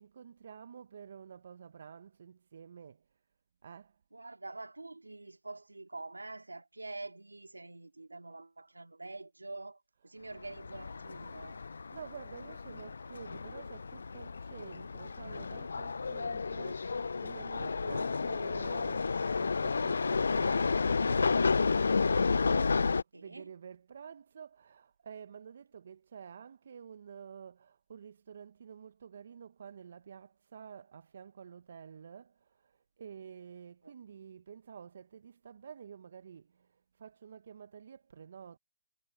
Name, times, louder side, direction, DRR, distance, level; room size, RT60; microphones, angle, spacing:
voice 1, 0.0-3.0 3.6-4.0 11.9-38.6, right 7 dB, 60° right, 1.0 m, -50 dB
voice 2, 4.1-11.6 17.9-18.0 23.1-23.5 33.8-33.9, right 2 dB, 90° right, 2.3 m, -46 dB
sound 1, 10.4-23.0, left 4 dB, 75° left, 0.3 m, -31 dB
figure-of-eight pair, 140°, 0 cm